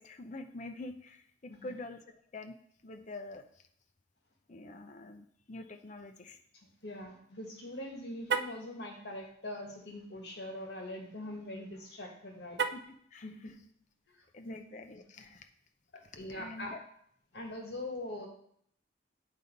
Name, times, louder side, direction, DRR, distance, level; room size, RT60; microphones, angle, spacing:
voice 1, 0.0-2.6 2.8-3.6 4.5-6.4 12.7-12.8 13.1-13.3 14.3-15.5 16.0-16.8, left 2 dB, 40° left, 6 dB, 0.6 m, -46 dB
voice 2, 6.8-12.6 13.2-13.5 14.1-14.5 15.9-16.7 17.3-18.3, left 1 dB, 60° left, 1 dB, 1.5 m, -42 dB
Car, 8.2-8.7 12.5-13.0, right 5 dB, 60° right, 0.4 m, -33 dB
8.3 x 3.9 x 5.2 m, 0.68 s
head